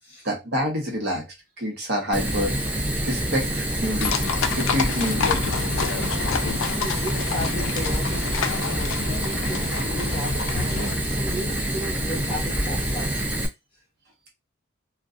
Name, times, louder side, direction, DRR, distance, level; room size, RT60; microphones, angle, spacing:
voice 1, 0.2-1.3 1.6-2.6 3.0-4.2 4.5-5.4, equal, 50° right, 0.9 m, -27 dB
Fire, 2.1-13.5, right 1 dB, 5° right, 0.4 m, -26 dB
sound 1, 4.0-10.9, left 6 dB, 65° left, 0.3 m, -29 dB
voice 2, 6.6-13.1, equal, 25° left, 1.3 m, -35 dB
2.6 x 2.2 x 2.4 m
head